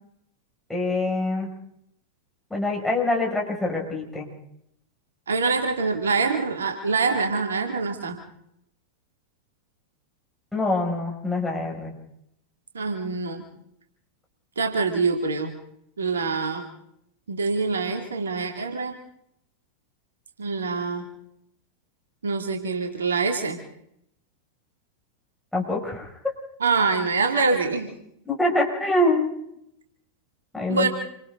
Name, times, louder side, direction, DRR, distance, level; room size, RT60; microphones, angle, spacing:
voice 1, 0.7-1.5 2.5-4.3 10.5-11.9 25.5-26.1 28.3-29.4 30.5-30.9, left 2 dB, 5° left, -2 dB, 6.5 m, -25 dB
voice 2, 5.3-8.2 12.7-13.4 14.6-15.5 16.0-16.7 17.3-19.0 20.4-21.1 22.2-23.6 26.6-27.9 30.7-30.9, right 4 dB, 70° right, 3 dB, 2.8 m, -25 dB
28.5 x 25.5 x 4.0 m, 0.75 s
figure-of-eight pair, 90°, 0 cm